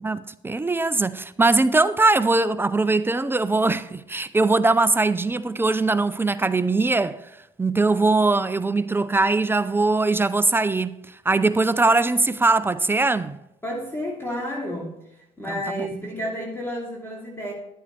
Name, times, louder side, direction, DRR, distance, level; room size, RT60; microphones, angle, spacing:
voice 1, 0.0-7.3 7.6-13.4 15.5-15.9, right 3 dB, 15° right, 0.5 m, -21 dB
voice 2, 13.6-17.5, equal, 15° left, 2.7 m, -31 dB
11.0 x 9.0 x 3.3 m
supercardioid pair, 85°, 15 cm